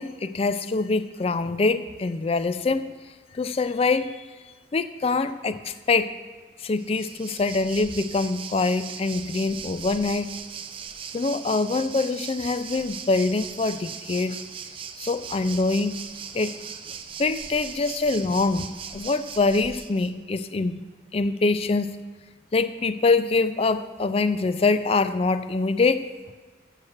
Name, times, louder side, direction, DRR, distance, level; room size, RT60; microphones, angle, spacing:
voice 1, 0.0-2.9 3.3-4.2 4.7-6.1 6.6-10.3 11.1-14.4 15.0-16.0 16.3-16.5 17.2-20.8 21.1-22.0 22.5-26.1, left 3 dB, 35° left, 13 dB, 0.4 m, -24 dB
Waves surf, 6.8-20.1, right 7 dB, 30° right, 0.5 m, -39 dB
7.7 x 6.5 x 7.1 m, 1.4 s
head